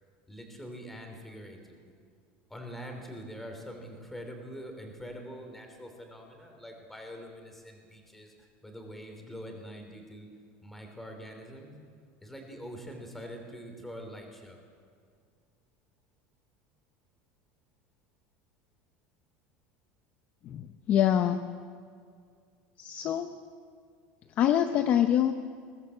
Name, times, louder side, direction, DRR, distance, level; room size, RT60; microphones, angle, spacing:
voice 1, 0.3-1.9 2.5-10.3 10.6-11.7 12.2-14.6, equal, 5° left, 3 dB, 3.0 m, -44 dB
voice 2, 20.4-21.4 22.8-23.3 24.4-25.3, left 10 dB, 30° left, 8 dB, 0.7 m, -25 dB
21.5 x 18.0 x 8.2 m, 2.2 s
cardioid pair, 175°, 5 cm